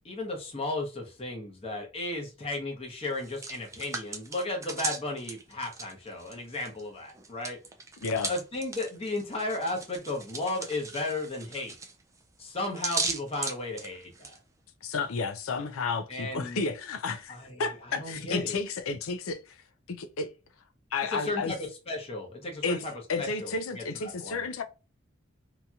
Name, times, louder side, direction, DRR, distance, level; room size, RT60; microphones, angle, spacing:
voice 1, 0.0-7.6 8.3-11.7 12.4-14.4 16.1-16.6 17.3-17.6 17.9-18.6 21.1-22.9 23.2-24.4, left 2 dB, 30° left, 0.8 m, -34 dB
Hands, 3.1-6.8 7.1-14.4, right 4 dB, 15° right, 0.3 m, -37 dB
voice 2, 8.0-8.3 14.8-19.6 19.9-20.3 20.9-21.5 22.6-22.8 23.1-24.6, left 4 dB, 85° left, 0.5 m, -32 dB
2.9 x 2.7 x 2.3 m
head